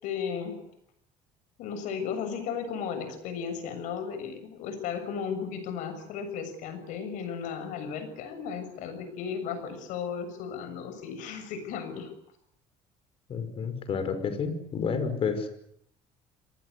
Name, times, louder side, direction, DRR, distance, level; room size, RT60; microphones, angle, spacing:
voice 1, 0.0-0.6 1.6-12.1, left 6 dB, 75° left, 9 dB, 7.0 m, -35 dB
voice 2, 13.3-15.5, left 6 dB, 45° left, 10 dB, 5.7 m, -30 dB
26.5 x 19.0 x 9.7 m, 0.69 s
cardioid pair, 110°, 13 cm